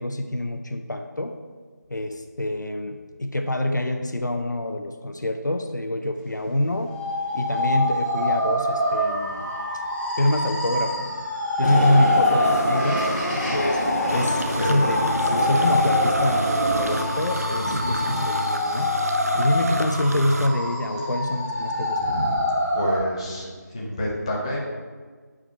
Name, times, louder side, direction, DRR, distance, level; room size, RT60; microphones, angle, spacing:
voice 1, 0.0-1.3 1.9-6.9 7.3-9.4 10.2-11.2 11.6-13.8 14.1-18.9 19.3-22.2, left 1 dB, 75° left, 5 dB, 0.7 m, -26 dB
sound 1, 6.9-23.0, left 1 dB, 10° right, 1.5 m, -25 dB
sound 2, 11.6-17.0, equal, 50° left, 2.0 m, -28 dB
sound 3, 14.1-20.5, right 1 dB, 55° right, 0.6 m, -31 dB
voice 2, 17.6-18.0 21.9-22.4 22.7-24.6, equal, 20° left, -5 dB, 0.9 m, -29 dB
7.6 x 4.9 x 4.3 m, 1.5 s
figure-of-eight pair, 170°, 10 cm